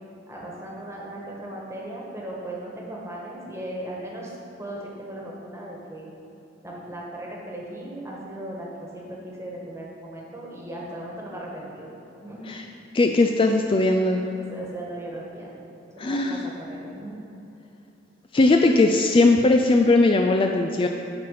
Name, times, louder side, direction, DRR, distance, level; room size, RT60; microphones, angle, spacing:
voice 1, 0.3-6.1 6.6-11.9 12.2-12.5 14.4-15.5 15.9-17.3, right 1 dB, 15° right, -3 dB, 1.4 m, -37 dB
voice 2, 12.9-14.2 16.0-16.5 18.3-20.9, left 2 dB, 30° left, 3 dB, 0.3 m, -19 dB
9.6 x 4.2 x 6.4 m, 3.0 s
head